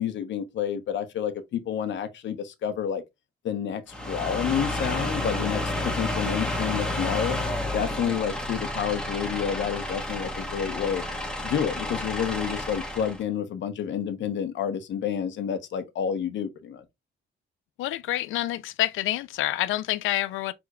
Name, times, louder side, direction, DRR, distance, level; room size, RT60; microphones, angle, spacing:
voice 1, 0.0-3.0 3.4-7.4 7.7-11.0 11.4-16.8, left 8 dB, 65° left, 0.9 m, -29 dB
sound 1, 3.9-13.2, left 1 dB, 5° left, 1.4 m, -30 dB
voice 2, 17.8-20.5, left 14 dB, 80° left, 0.5 m, -27 dB
6.2 x 3.5 x 2.3 m
cardioid pair, 90°, 20 cm